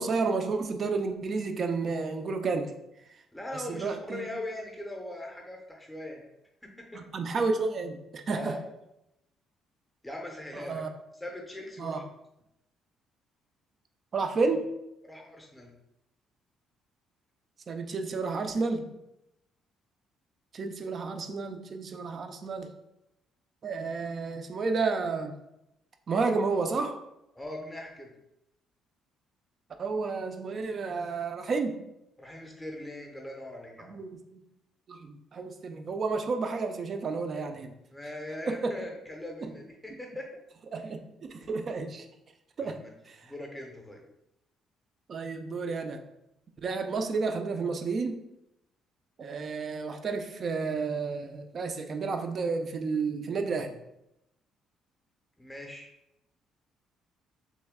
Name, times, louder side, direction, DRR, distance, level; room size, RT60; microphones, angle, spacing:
voice 1, 0.0-2.8 3.5-4.3 6.9-8.6 10.5-10.9 11.8-12.0 14.1-14.7 17.7-18.9 20.5-22.7 23.6-25.3 26.1-27.0 29.8-31.8 33.8-34.4 34.9-37.8 38.5-38.8 39.4-39.5 40.7-42.1 42.6-42.8 43.1-43.3 45.1-46.0 46.6-48.2 49.2-53.8, right 4 dB, 35° right, 6 dB, 0.4 m, -31 dB
voice 2, 3.3-6.2 6.6-7.0 8.3-8.6 10.0-10.8 11.2-12.0 15.1-15.7 27.3-28.1 32.2-34.0 37.9-40.3 40.8-40.9 42.6-42.9 43.2-44.0 55.4-55.9, left 1 dB, 5° left, 1 dB, 0.6 m, -40 dB
3.2 x 3.1 x 3.5 m, 0.86 s
cardioid pair, 165°, 0 cm